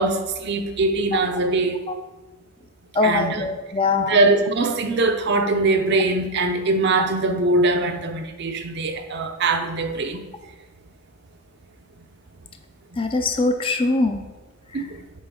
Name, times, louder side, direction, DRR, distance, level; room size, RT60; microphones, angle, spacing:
voice 1, 0.0-1.8 3.0-3.4 4.0-10.2 14.7-15.0, right 2 dB, 50° right, 6 dB, 0.6 m, -22 dB
voice 2, 3.0-4.2 7.0-7.1 13.0-14.2, left 3 dB, 25° left, 6 dB, 0.5 m, -22 dB
8.3 x 5.3 x 3.7 m, 1.2 s
head